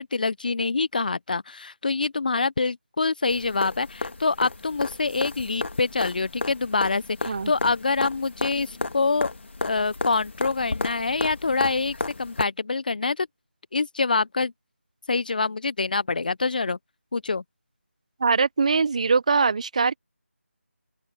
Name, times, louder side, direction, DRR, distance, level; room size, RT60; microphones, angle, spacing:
voice 1, 0.0-9.3 9.6-13.3 13.7-14.5 15.1-16.8 17.1-17.4, left 4 dB, 40° left, 0.7 m, -25 dB
sound 1, 3.3-12.4 14.4-14.5, left 3 dB, 55° left, 2.7 m, -33 dB
voice 2, 18.2-20.0, right 4 dB, 30° right, 0.6 m, -22 dB
open air
figure-of-eight pair, 170°, 7 cm